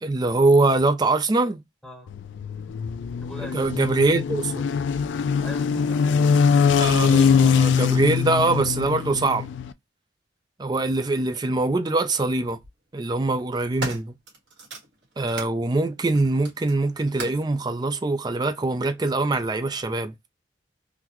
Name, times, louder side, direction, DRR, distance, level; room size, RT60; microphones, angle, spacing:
voice 1, 0.0-1.6 3.5-4.7 6.8-9.5 10.6-12.6 12.9-14.1 15.2-20.1, right 2 dB, 20° right, 0.4 m, -23 dB
voice 2, 1.8-2.1 3.2-3.8 5.4-6.8, left 1 dB, 5° left, 1.0 m, -41 dB
sound 1, 2.1-9.7, left 6 dB, 70° left, 0.3 m, -22 dB
sound 2, 11.2-11.3 12.4-12.7 13.3-15.6 16.0-17.5 18.4-18.5, right 2 dB, 65° right, 1.5 m, -38 dB
3.8 x 2.1 x 2.9 m
head